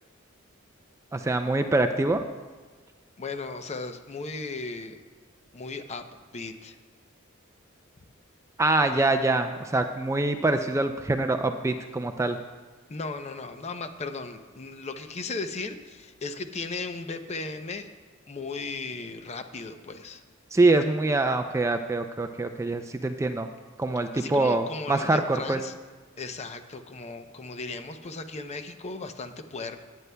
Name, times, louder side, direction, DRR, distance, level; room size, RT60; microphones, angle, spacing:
voice 1, 1.1-2.2 8.6-12.4 20.5-23.5 23.8-25.6, right 2 dB, 15° right, 7 dB, 0.3 m, -24 dB
voice 2, 3.2-5.0 5.5-6.1 6.3-6.8 12.9-17.9 18.3-20.2 24.1-25.7 26.2-29.8, left 3 dB, 30° left, 8 dB, 0.6 m, -36 dB
16.5 x 9.1 x 2.2 m, 1.3 s
head